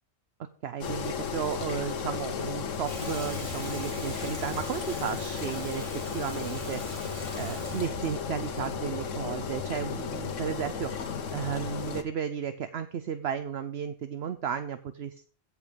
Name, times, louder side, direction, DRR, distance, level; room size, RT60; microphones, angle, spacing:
voice 1, 0.4-6.8 7.4-15.3, right 8 dB, 60° right, 11 dB, 0.9 m, -34 dB
Engine, 0.8-12.0, left 6 dB, 85° left, 1.4 m, -34 dB
Water tap faucet / Sink (filling or washing), 2.8-9.9, right 1 dB, 25° right, 3.6 m, -43 dB
16.0 x 6.2 x 5.2 m, 0.43 s
omnidirectional pair, 1.3 m